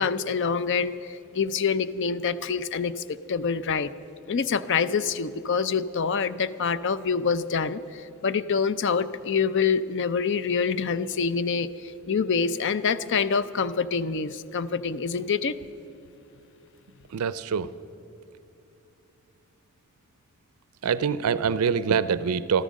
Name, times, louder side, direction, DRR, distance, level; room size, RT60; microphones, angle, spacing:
voice 1, 0.0-3.9 4.3-15.6, left 5 dB, 55° left, 15 dB, 0.5 m, -26 dB
voice 2, 17.1-17.7 20.8-22.6, right 6 dB, 90° right, 16 dB, 0.4 m, -25 dB
13.5 x 13.5 x 6.3 m, 2.9 s
head